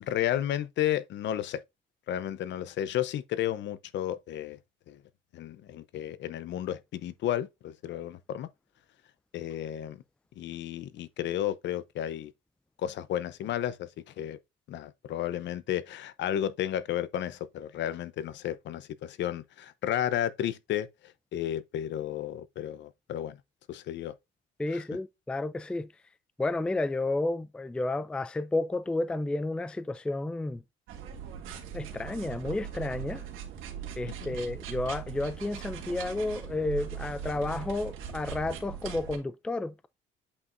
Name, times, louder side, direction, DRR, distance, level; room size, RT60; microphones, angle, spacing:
voice 1, 0.0-1.6 2.1-4.6 4.9-5.0 5.3-8.5 9.3-10.0 10.4-12.3 12.8-14.4 14.7-23.4 23.7-24.1 24.7-24.8 34.1-34.4, left 11 dB, 65° left, 0.7 m, -33 dB
voice 2, 24.6-25.9 26.4-30.6 31.7-33.2 34.0-39.9, left 2 dB, 5° left, 0.3 m, -31 dB
sound 1, 30.9-39.2, right 8 dB, 90° right, 1.8 m, -40 dB
8.3 x 5.4 x 2.6 m
cardioid pair, 145°, 20 cm